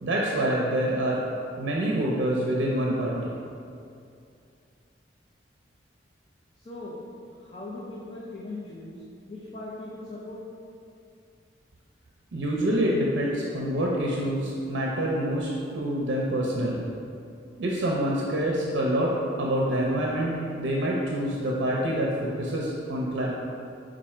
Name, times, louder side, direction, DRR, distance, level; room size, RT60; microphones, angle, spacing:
voice 1, 0.0-1.2 1.6-3.3 12.3-16.8 17.6-19.1 19.4-23.3, right 1 dB, 75° right, -3 dB, 0.5 m, -26 dB
voice 2, 6.6-7.0 7.4-9.0 9.3-10.4, left 2 dB, 30° left, -6 dB, 0.5 m, -39 dB
4.7 x 2.5 x 4.2 m, 2.5 s
head